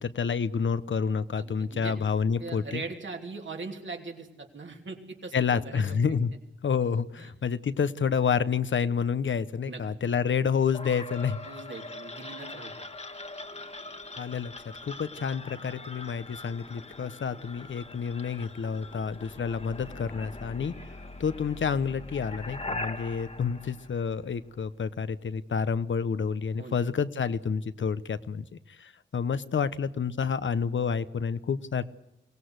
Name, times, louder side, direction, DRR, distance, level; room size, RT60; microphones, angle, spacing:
voice 1, 0.0-2.8 5.3-6.3 6.6-11.4 14.2-14.5 14.8-20.7 21.2-31.8, left 6 dB, 75° left, 13 dB, 1.0 m, -29 dB
voice 2, 1.4-2.0 2.4-6.0 7.2-7.3 9.7-9.8 11.4-12.9 26.6-26.8, right 3 dB, 70° right, 2 dB, 3.1 m, -40 dB
sound 1, 10.7-24.6, left 2 dB, 35° left, 1.5 m, -42 dB
23.5 x 17.5 x 8.1 m, 0.90 s
cardioid pair, 40°, 20 cm